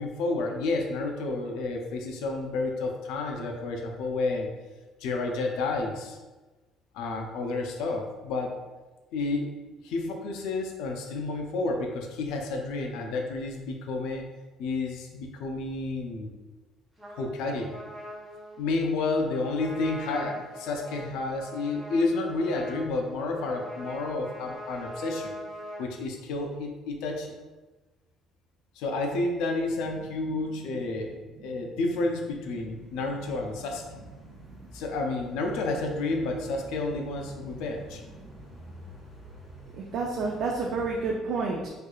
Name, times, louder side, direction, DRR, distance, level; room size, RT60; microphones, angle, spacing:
voice 1, 0.0-4.5 5.0-6.2 6.9-8.6 9.1-9.5 9.8-14.2 14.6-16.3 17.2-17.8 18.6-25.3 25.8-27.3 28.8-31.1 31.4-33.8 34.7-38.0, left 3 dB, 80° left, 2 dB, 0.4 m, -30 dB
Trumpet, 17.0-25.9, equal, 10° right, 0.6 m, -42 dB
sound 1, 32.5-41.1, equal, 10° left, 1.0 m, -49 dB
voice 2, 34.2-34.6 38.3-38.4 39.7-41.7, right 3 dB, 45° right, -1 dB, 0.3 m, -30 dB
4.5 x 2.4 x 2.3 m, 1.2 s
cardioid pair, 175°, 0 cm